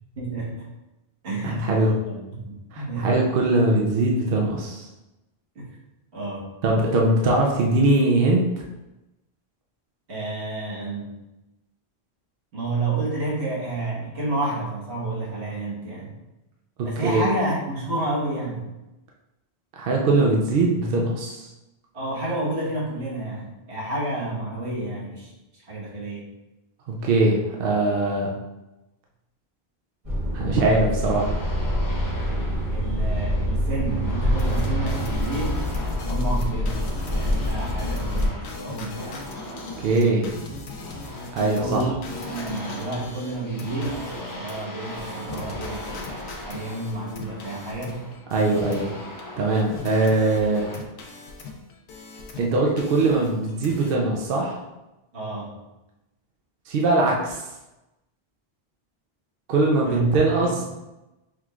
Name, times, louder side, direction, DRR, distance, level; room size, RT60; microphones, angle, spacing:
voice 1, 0.2-0.7 1.2-3.3 5.6-5.7 6.1-6.5 10.1-11.1 12.5-16.2 16.8-18.6 21.9-26.3 32.7-36.9 37.1-39.3 41.6-42.0 42.3-48.1 55.1-55.6 59.8-60.6, right 2 dB, 85° right, -6 dB, 1.6 m, -30 dB
voice 2, 1.4-1.9 2.7-4.9 6.6-8.6 16.8-17.3 19.8-21.5 27.0-28.3 30.3-31.4 39.8-40.3 41.3-41.9 48.3-48.9 49.4-50.6 52.4-54.6 56.7-57.4 59.5-60.5, right 2 dB, 65° right, -1 dB, 0.8 m, -21 dB
sound 1, 30.0-38.3, equal, 35° right, 1.2 m, -26 dB
sound 2, 31.0-50.8, left 1 dB, 25° left, 0.5 m, -40 dB
sound 3, 34.4-49.2 49.4-52.5 52.8-53.9, left 3 dB, 80° left, 0.9 m, -39 dB
5.8 x 3.0 x 2.4 m, 0.99 s
omnidirectional pair, 1.1 m